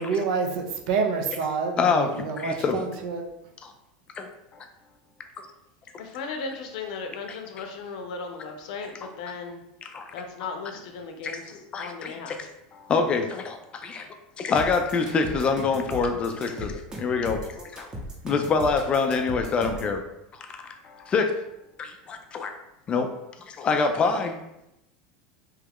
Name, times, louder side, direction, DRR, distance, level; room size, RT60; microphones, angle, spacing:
voice 1, 0.0-3.3, right 5 dB, 75° right, 3 dB, 0.5 m, -28 dB
voice 2, 1.8-2.8 3.6-3.7 4.2-4.3 7.3-7.4 9.0-9.1 9.8-10.1 10.4-10.5 11.2-12.4 12.7-14.1 14.4-17.9 18.2-20.0 20.3-21.4 21.8-22.5 22.9-24.4, left 4 dB, 25° left, 6 dB, 0.3 m, -26 dB
voice 3, 6.0-9.6 10.1-11.4 11.8-12.3, left 4 dB, 75° left, 4 dB, 0.5 m, -36 dB
sound 1, 14.6-19.9, equal, 15° right, 0.7 m, -37 dB
3.0 x 2.3 x 3.4 m, 0.87 s
supercardioid pair, 140°, 4 cm